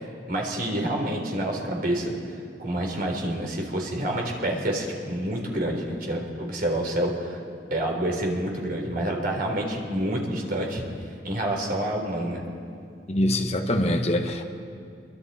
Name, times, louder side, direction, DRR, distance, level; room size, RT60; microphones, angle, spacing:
voice 1, 0.3-2.1 2.6-7.4 7.7-10.8 11.2-12.4, right 1 dB, 50° right, 1 dB, 3.9 m, -28 dB
voice 2, 13.1-14.4, left 1 dB, 35° left, 3 dB, 1.4 m, -24 dB
27.0 x 23.5 x 4.4 m, 2.3 s
head